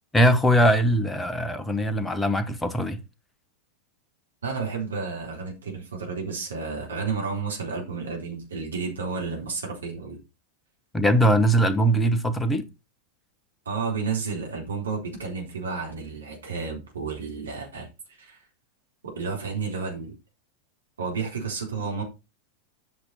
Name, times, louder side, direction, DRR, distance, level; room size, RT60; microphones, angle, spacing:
voice 1, 0.1-3.0 10.9-12.7, equal, 10° left, 1.2 m, -21 dB
voice 2, 4.4-10.2 13.7-17.9 18.2-18.4 19.0-20.1 21.0-22.0, right 5 dB, 70° right, 3.9 m, -31 dB
8.6 x 6.3 x 4.2 m
figure-of-eight pair, 90°, 0 cm